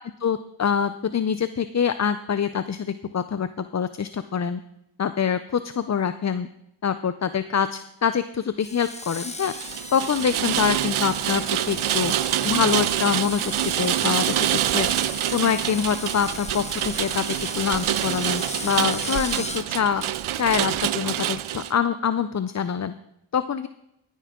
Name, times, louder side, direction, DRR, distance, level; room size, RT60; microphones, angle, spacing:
voice 1, 0.2-4.6 5.0-6.5 6.8-9.5 9.9-12.1 12.4-13.4 13.8-14.3 14.6-14.9 15.3-17.2 17.6-20.0 20.4-22.9 23.3-23.7, left 7 dB, 35° left, 12 dB, 0.5 m, -25 dB
Screech, 8.6-19.7, left 2 dB, 15° left, 0.9 m, -36 dB
Rain, 9.4-21.7, right 12 dB, 75° right, 0.5 m, -26 dB
19.0 x 9.4 x 3.7 m, 0.83 s
wide cardioid pair, 70°, 49 cm